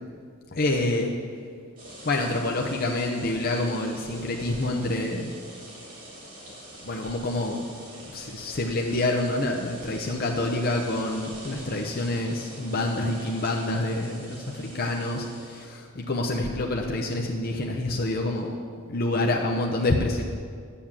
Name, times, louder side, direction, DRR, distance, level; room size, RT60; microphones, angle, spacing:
voice 1, 0.5-1.1 2.0-5.3 6.8-7.7 8.1-18.6 18.9-20.2, left 2 dB, 45° left, 1 dB, 0.8 m, -27 dB
sound 1, 1.8-15.7, equal, 40° right, 3.6 m, -44 dB
9.9 x 7.1 x 7.4 m, 2.1 s
head